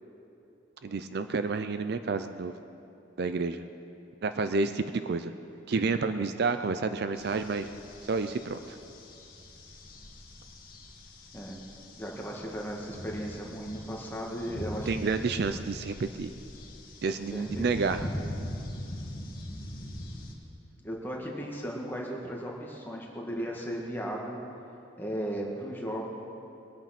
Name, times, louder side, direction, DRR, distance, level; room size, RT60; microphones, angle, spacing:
voice 1, 0.8-2.6 3.2-3.6 4.2-5.3 5.7-7.7 8.0-8.8 14.9-16.3 17.0-18.0, right 4 dB, 55° right, 10 dB, 0.4 m, -30 dB
sound 1, 7.1-20.3, left 1 dB, 50° left, 1.9 m, -42 dB
voice 2, 12.0-15.0 16.6-16.7 17.3-17.6 18.0-18.1 20.8-24.4 25.0-26.1, equal, 10° left, -2 dB, 1.8 m, -36 dB
21.5 x 9.0 x 5.9 m, 2.8 s
head